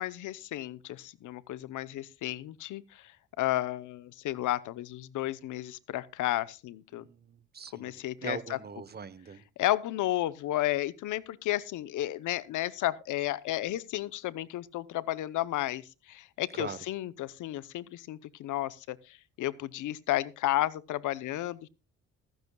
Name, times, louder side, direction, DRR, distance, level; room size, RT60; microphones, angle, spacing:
voice 1, 0.0-3.0 3.4-7.0 7.7-8.6 9.6-19.0 19.4-21.7, left 14 dB, 80° left, 0.9 m, -32 dB
voice 2, 6.9-9.4 16.5-16.8, right 6 dB, 30° right, 1.1 m, -42 dB
15.0 x 15.0 x 2.3 m
cardioid pair, 90°, 30 cm